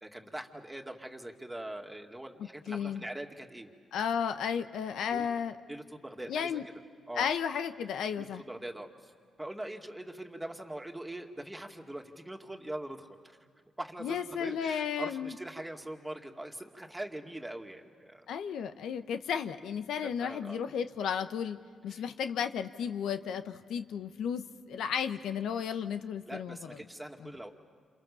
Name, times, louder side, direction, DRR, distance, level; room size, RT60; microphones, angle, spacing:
voice 1, 0.0-3.7 5.1-5.3 5.7-6.6 7.1-7.3 8.2-9.1 9.4-13.4 13.8-18.3 20.0-20.6 21.9-22.0 25.5-25.6 26.3-27.5, right 1 dB, 10° right, 3 dB, 2.3 m, -42 dB
voice 2, 2.7-3.0 3.9-5.5 6.3-6.6 7.2-8.4 14.0-15.3 18.3-21.6 21.8-26.6, left 7 dB, 90° left, 9 dB, 1.0 m, -33 dB
28.5 x 28.5 x 7.1 m, 2.1 s
cardioid pair, 90°, 0 cm